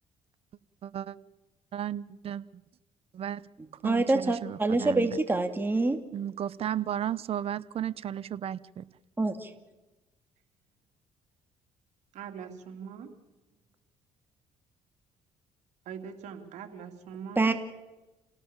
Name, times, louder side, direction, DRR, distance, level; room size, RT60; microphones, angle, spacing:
voice 1, 0.8-1.2 1.7-2.6 3.1-3.5 3.8-5.2 6.1-8.9, right 10 dB, 55° right, 16 dB, 0.9 m, -34 dB
voice 2, 3.8-6.0 9.2-9.5 17.4-17.5, right 2 dB, 15° right, 7 dB, 2.5 m, -26 dB
voice 3, 12.1-13.1 15.8-17.5, right 7 dB, 75° right, 5 dB, 3.1 m, -42 dB
28.5 x 18.0 x 7.4 m, 1.1 s
cardioid pair, 85°, 12 cm